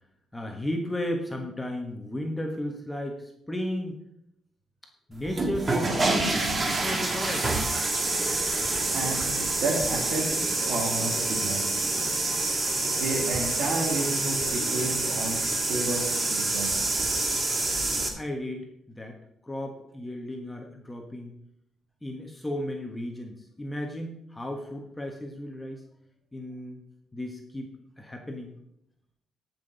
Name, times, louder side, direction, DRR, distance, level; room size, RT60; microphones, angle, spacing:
voice 1, 0.3-4.0 5.1-7.5 18.2-19.2 19.4-21.3 22.0-25.8 26.3-26.8 27.1-27.7 28.0-28.5, left 1 dB, 10° left, 2 dB, 1.4 m, -34 dB
sound 1, 5.2-18.1, right 2 dB, 30° right, 1.7 m, -27 dB
voice 2, 8.9-12.1 12.9-16.9, right 2 dB, 75° right, -2 dB, 2.7 m, -32 dB
14.0 x 6.0 x 4.0 m, 0.77 s
cardioid pair, 90°, 0 cm